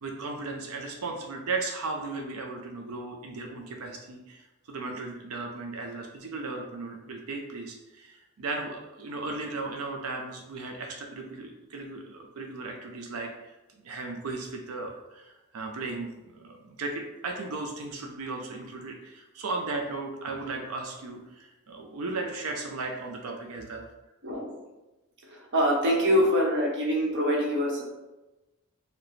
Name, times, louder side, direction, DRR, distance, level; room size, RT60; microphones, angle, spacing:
voice 1, 0.0-4.4 4.7-13.6 13.8-23.8, right 3 dB, 75° right, 2 dB, 0.5 m, -36 dB
voice 2, 24.2-24.6 25.5-27.8, equal, 55° right, -2 dB, 1.0 m, -24 dB
4.8 x 2.2 x 3.1 m, 1.0 s
head